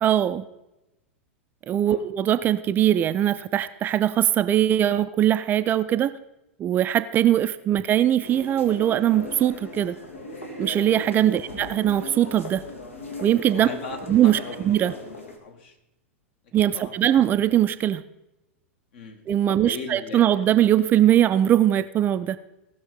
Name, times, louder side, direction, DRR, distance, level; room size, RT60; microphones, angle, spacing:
voice 1, 0.0-0.4 1.7-6.1 6.6-10.0 10.6-12.6 13.2-13.7 14.1-14.9 16.5-18.0 19.3-22.4, right 11 dB, 25° right, 12 dB, 0.4 m, -21 dB
sound 1, 8.2-15.4, left 2 dB, 75° left, 1.9 m, -38 dB
voice 2, 13.5-15.1 15.4-15.8 16.7-17.0 18.9-19.2 19.5-20.4, left 4 dB, 55° left, 4 dB, 1.9 m, -38 dB
17.0 x 6.4 x 5.0 m, 0.93 s
figure-of-eight pair, 95°, 7 cm